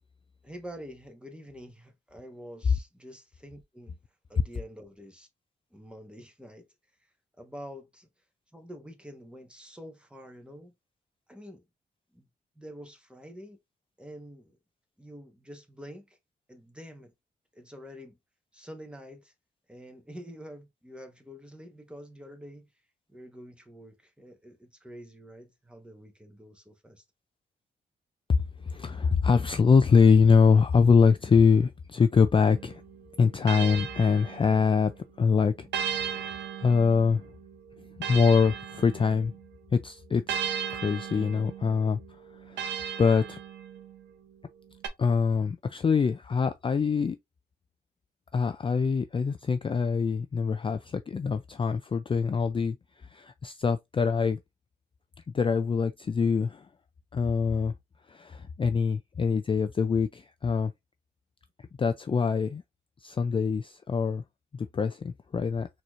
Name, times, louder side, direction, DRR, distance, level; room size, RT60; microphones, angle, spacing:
voice 1, 0.4-3.9 4.3-5.3 5.7-6.7 7.4-8.1 8.5-10.7 11.3-11.6 12.1-12.2 12.5-13.6 14.0-14.6 15.0-16.2 16.5-17.1 17.5-18.2 18.5-19.3 19.7-22.7 23.1-27.0, equal, 5° right, 1.2 m, -46 dB
voice 2, 28.6-32.8 33.2-34.9 35.2-36.3 36.6-37.2 38.1-39.3 39.7-42.0 42.5-42.7 43.0-43.4 45.0-47.2 48.3-52.8 53.1-54.4 55.3-56.7 57.1-57.7 58.1-60.7 61.8-62.6 63.0-64.2 64.5-65.7, left 5 dB, 30° left, 0.4 m, -24 dB
sound 1, 32.5-35.0 35.7-39.5 40.3-44.1 44.8-44.9, right 8 dB, 85° right, 0.7 m, -37 dB
4.1 x 3.1 x 2.5 m
cardioid pair, 60°, 18 cm